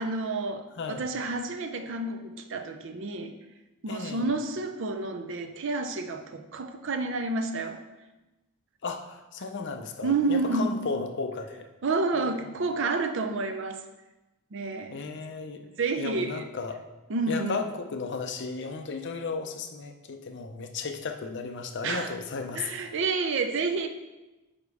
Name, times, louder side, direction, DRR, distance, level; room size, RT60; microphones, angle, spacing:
voice 1, 0.0-3.3 3.8-7.8 10.0-10.7 11.8-13.8 14.5-15.0 15.8-16.4 17.1-17.6 21.8-22.2 22.5-23.9, right 3 dB, 60° right, 6 dB, 0.5 m, -29 dB
voice 2, 3.9-4.3 8.8-11.7 12.1-12.4 14.9-15.6 16.0-16.8 17.3-22.7, left 4 dB, 55° left, 6 dB, 0.6 m, -34 dB
5.1 x 5.0 x 4.8 m, 1.1 s
head